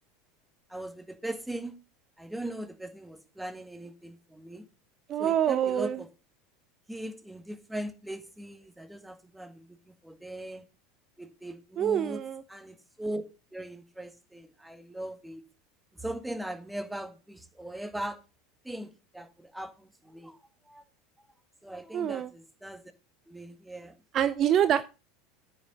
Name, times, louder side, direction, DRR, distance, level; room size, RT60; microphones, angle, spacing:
voice 1, 0.7-1.8 2.2-4.6 5.2-6.1 6.9-10.6 11.2-12.2 12.5-13.2 13.5-15.4 16.0-18.2 18.6-20.4 20.7-20.8 21.6-22.8 23.3-24.0, right 1 dB, 5° right, 1.8 m, -39 dB
voice 2, 5.1-6.0 11.8-12.4 21.9-22.3 24.1-24.8, right 10 dB, 40° right, 0.7 m, -26 dB
9.5 x 6.6 x 5.8 m
hypercardioid pair, 80°, 0 cm